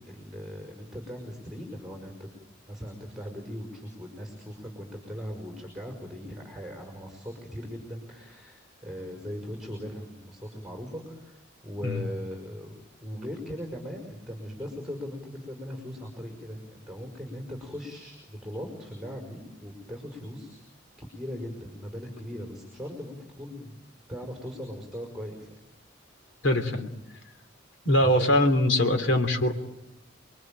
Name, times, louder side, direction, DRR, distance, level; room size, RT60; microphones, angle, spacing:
voice 1, 0.0-2.3 2.7-12.8 13.0-20.6 21.0-23.8 24.1-25.5 28.0-28.3, equal, ahead, 1 dB, 5.4 m, -39 dB
voice 2, 26.4-26.9 27.8-29.5, left 1 dB, 70° left, 6 dB, 3.1 m, -22 dB
29.0 x 22.5 x 9.0 m, 0.91 s
head